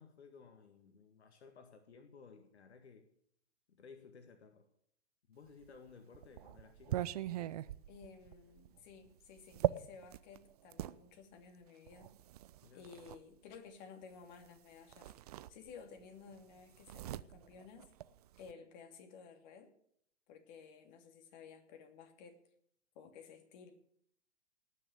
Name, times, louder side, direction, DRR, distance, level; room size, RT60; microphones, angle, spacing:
voice 1, 0.0-3.1 3.7-4.7 5.3-7.1 12.6-12.9, left 5 dB, 65° left, 6 dB, 1.9 m, -57 dB
sound 1, 5.6-11.0 11.9-13.2 14.4-14.6 14.9-16.0 16.3-18.5, right 14 dB, 35° right, 0.5 m, -41 dB
voice 2, 7.9-12.1 12.7-15.1 15.5-17.9 18.4-19.7 20.3-22.4 22.9-23.7, left 6 dB, 40° left, 4 dB, 2.8 m, -55 dB
19.0 x 6.9 x 8.7 m, 0.69 s
figure-of-eight pair, 125°, 35 cm